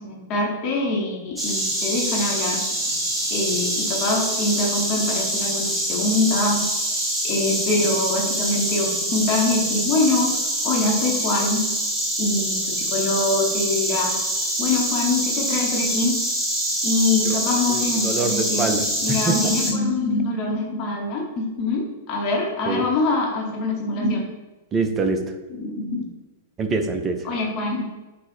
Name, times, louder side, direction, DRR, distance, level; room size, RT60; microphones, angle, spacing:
voice 1, 0.0-2.6 3.3-6.6 7.2-10.3 10.6-11.6 12.2-14.1 14.6-16.1 16.8-24.3 25.5-26.1 27.2-27.8, left 2 dB, 40° left, -1 dB, 0.7 m, -24 dB
Insect, 1.4-19.7, right 1 dB, 10° right, 0.8 m, -25 dB
voice 2, 17.7-18.8 19.1-19.4 22.7-22.8 24.7-25.2 26.6-27.2, right 3 dB, 25° right, 6 dB, 0.4 m, -24 dB
3.7 x 2.1 x 4.3 m, 1.2 s
figure-of-eight pair, 100°, 0 cm